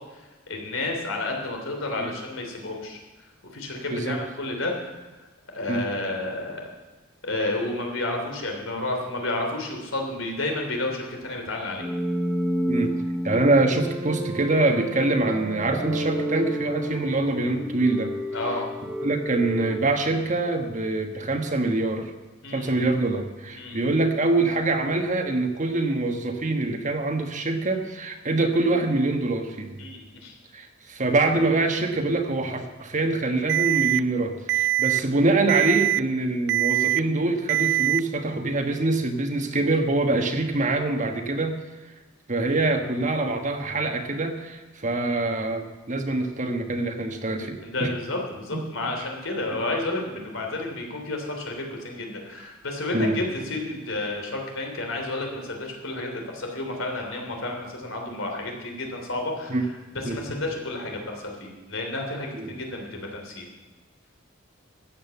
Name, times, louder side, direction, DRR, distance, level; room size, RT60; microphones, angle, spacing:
voice 1, 0.1-3.0 3.5-4.7 5.5-6.6 7.2-11.9 18.3-18.7 22.4-22.8 23.6-23.9 29.8-30.3 47.6-59.6 59.9-63.4, left 2 dB, 75° left, 2 dB, 3.2 m, -31 dB
sound 1, 11.8-20.8, right 1 dB, 5° right, 1.7 m, -31 dB
voice 2, 13.2-18.1 19.0-22.1 22.5-29.8 30.5-41.6 42.3-47.9 48.5-48.6 52.9-53.2 59.5-59.6 60.0-60.2 62.3-62.5, right 2 dB, 40° right, 5 dB, 1.3 m, -24 dB
Alarm, 33.5-34.0 34.5-35.0 35.5-36.0 36.5-37.0 37.5-38.0, right 14 dB, 55° right, 0.4 m, -22 dB
14.0 x 8.7 x 7.0 m, 1.2 s
head